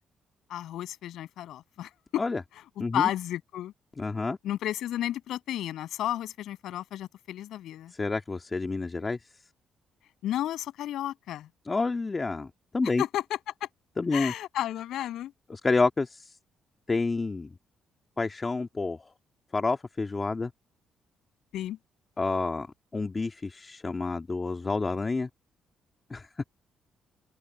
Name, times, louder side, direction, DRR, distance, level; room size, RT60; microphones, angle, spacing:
voice 1, 0.5-2.2 2.5-3.7 4.4-7.9 10.2-11.5 13.0-13.7 14.1-15.3 21.5-21.8, left 12 dB, 80° left, 7.8 m, -32 dB
voice 2, 2.8-3.1 4.0-4.4 8.0-9.2 11.7-13.0 14.0-14.3 15.5-16.4 16.9-17.5 18.2-19.0 19.5-20.5 22.2-22.7 22.9-25.3 26.1-26.3, left 3 dB, 25° left, 2.0 m, -29 dB
open air
cardioid pair, 90°, 0 cm